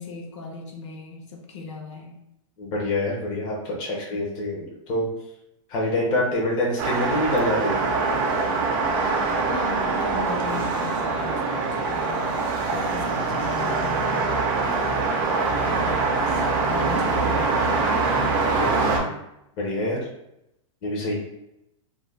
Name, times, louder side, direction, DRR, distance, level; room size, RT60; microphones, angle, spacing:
voice 1, 0.0-2.2 9.4-12.3 12.7-14.4 15.6-17.9, left 4 dB, 65° left, 1 dB, 0.7 m, -37 dB
voice 2, 2.6-5.1 5.7-7.9 18.5-19.1 19.6-20.0 20.8-21.2, left 1 dB, 25° left, -3 dB, 0.5 m, -26 dB
sound 1, 6.8-19.0, right 3 dB, 40° right, 0.4 m, -24 dB
2.3 x 2.1 x 3.1 m, 0.85 s
supercardioid pair, 165°, 17 cm